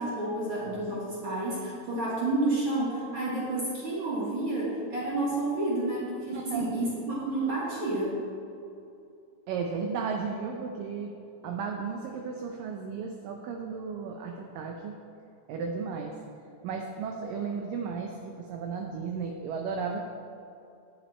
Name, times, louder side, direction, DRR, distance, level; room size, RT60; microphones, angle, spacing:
voice 1, 0.0-8.1, right 2 dB, 60° right, -6 dB, 1.3 m, -30 dB
voice 2, 6.3-6.7 9.5-11.1 11.4-14.9 15.5-16.1 16.6-20.0, right 5 dB, 90° right, 2 dB, 1.9 m, -34 dB
9.0 x 8.2 x 4.3 m, 2.6 s
omnidirectional pair, 4.7 m